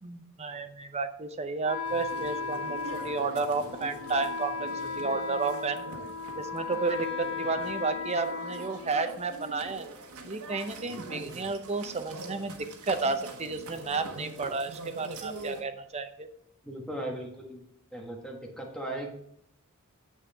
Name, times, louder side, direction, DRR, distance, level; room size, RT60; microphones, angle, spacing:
voice 1, 0.0-2.8 3.0-4.7 5.0-5.8 6.4-9.9 10.2-16.3, right 4 dB, 30° right, 9 dB, 0.6 m, -32 dB
Wind instrument woodwind instrument, 1.6-9.4, left 4 dB, 70° left, 0.9 m, -36 dB
sound 1, 1.8-15.6, right 2 dB, 90° right, 1.2 m, -43 dB
voice 2, 16.6-17.6 17.9-19.1, right 1 dB, 5° left, 0 dB, 1.4 m, -37 dB
7.6 x 6.4 x 3.4 m, 0.72 s
head